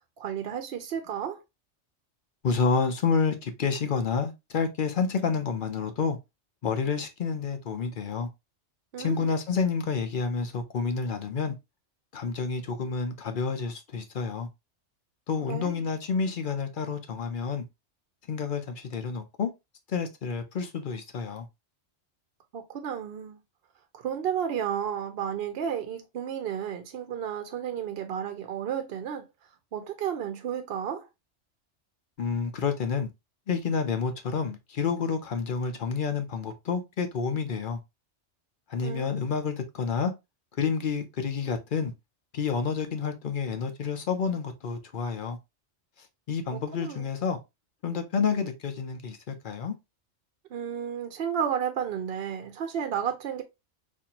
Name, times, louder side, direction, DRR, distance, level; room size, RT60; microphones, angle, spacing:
voice 1, 0.2-1.4 8.9-9.3 15.5-15.8 22.5-23.4 23.9-29.3 29.7-31.1 38.8-39.2 46.5-47.1 50.5-53.4, right 8 dB, 65° right, 0.7 m, -32 dB
voice 2, 2.4-6.2 6.6-8.3 9.0-11.5 12.1-14.5 15.3-17.6 18.3-19.5 19.9-21.5 32.2-33.1 33.5-37.8 38.7-40.1 40.6-41.9 42.3-45.4 46.3-47.4 47.8-49.7, left 5 dB, 55° left, 0.7 m, -29 dB
4.2 x 2.5 x 2.8 m
omnidirectional pair, 1.2 m